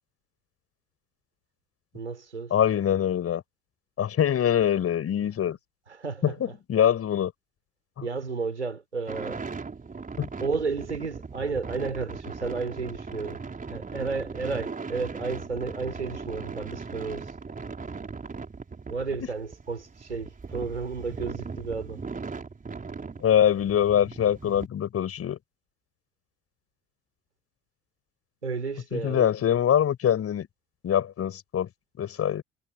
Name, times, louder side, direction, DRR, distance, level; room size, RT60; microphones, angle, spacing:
voice 1, 1.9-2.5 6.0-6.3 8.0-9.4 10.4-13.4 13.7-17.3 18.9-22.0 28.4-29.3, right 4 dB, 85° right, 4.9 m, -32 dB
voice 2, 2.5-3.4 4.0-5.6 6.2-6.3 6.7-7.3 8.0-8.1 10.2-10.3 23.2-25.4 28.9-30.5 30.8-31.7 32.0-32.4, left 9 dB, 45° left, 6.8 m, -24 dB
sound 1, 9.1-24.7, right 4 dB, 25° right, 4.5 m, -38 dB
figure-of-eight pair, 50°, 33 cm